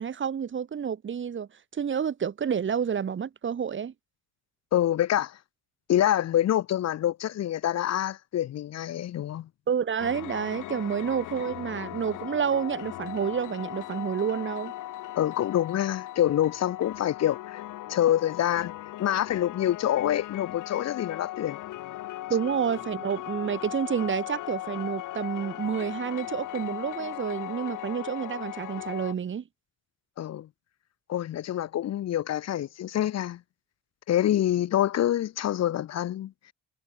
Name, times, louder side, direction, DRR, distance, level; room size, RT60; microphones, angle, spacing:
voice 1, 0.0-3.9 9.7-14.7 22.3-29.4, right 7 dB, 40° right, 1.2 m, -29 dB
voice 2, 4.7-5.4 5.9-9.5 15.2-17.6 17.9-18.7 19.0-21.6 30.2-30.5 31.1-33.4 34.1-36.3, left 12 dB, 60° left, 0.8 m, -26 dB
sound 1, 10.0-29.1, left 15 dB, 85° left, 6.0 m, -38 dB
cardioid pair, 90°, 30 cm